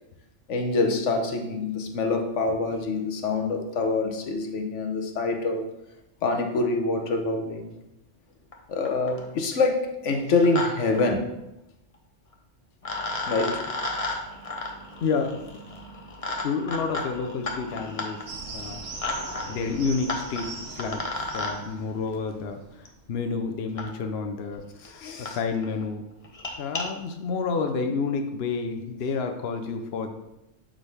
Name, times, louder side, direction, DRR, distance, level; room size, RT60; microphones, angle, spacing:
voice 1, 0.5-5.7 6.2-7.8 8.7-11.3 13.3-13.7 24.8-25.4, left 3 dB, 85° left, 4 dB, 1.2 m, -26 dB
sound 1, 8.5-8.6 8.9-9.3 10.1-10.7 10.9-11.0 12.3-12.4 12.8-21.5 22.9-23.0 23.8-23.9 24.5-24.6 24.8-24.9 25.3-25.4 25.6-25.8 26.2-26.8, left 2 dB, 35° left, 0.9 m, -33 dB
voice 2, 15.0-15.4 16.4-18.8 19.5-26.0 26.6-30.1, left 4 dB, 60° left, 5 dB, 0.9 m, -30 dB
sound 2, 18.3-23.1, right 3 dB, 75° right, 1.3 m, -41 dB
11.0 x 3.8 x 3.4 m, 0.90 s
omnidirectional pair, 1.2 m